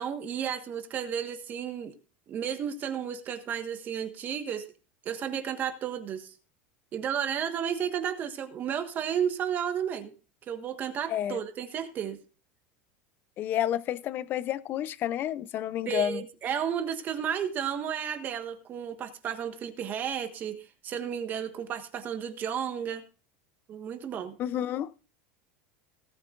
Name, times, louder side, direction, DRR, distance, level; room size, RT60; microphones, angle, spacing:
voice 1, 0.0-1.9 2.3-4.7 5.0-6.3 6.9-10.1 10.5-12.2 15.8-23.0 23.7-24.4, right 8 dB, 30° right, 1.4 m, -33 dB
voice 2, 13.4-16.2 24.4-24.9, left 11 dB, 30° left, 0.6 m, -30 dB
18.0 x 9.5 x 2.5 m
supercardioid pair, 160°, 6 cm